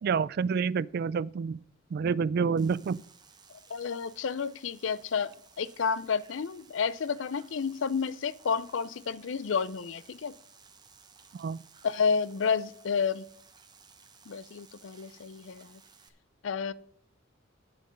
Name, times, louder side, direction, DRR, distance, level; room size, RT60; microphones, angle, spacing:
voice 1, 0.0-1.6 1.9-3.0 11.3-11.6, right 5 dB, 55° right, 0.3 m, -28 dB
sound 1, 2.6-16.1, right 5 dB, 20° right, 1.0 m, -58 dB
voice 2, 3.7-10.3 11.8-13.2 14.3-15.8 16.4-16.7, left 6 dB, 70° left, 0.5 m, -30 dB
8.5 x 7.6 x 5.5 m
head